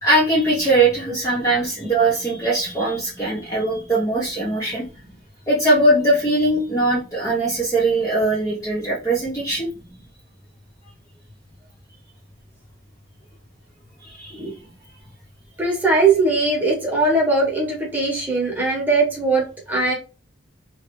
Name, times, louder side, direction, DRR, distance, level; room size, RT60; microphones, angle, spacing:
voice 1, 0.0-4.8 5.5-9.7 14.1-14.4, right 2 dB, 15° left, -6 dB, 0.9 m, -20 dB
voice 2, 15.6-19.9, right 3 dB, 10° right, -4 dB, 1.3 m, -20 dB
3.3 x 2.7 x 3.2 m, 0.33 s
head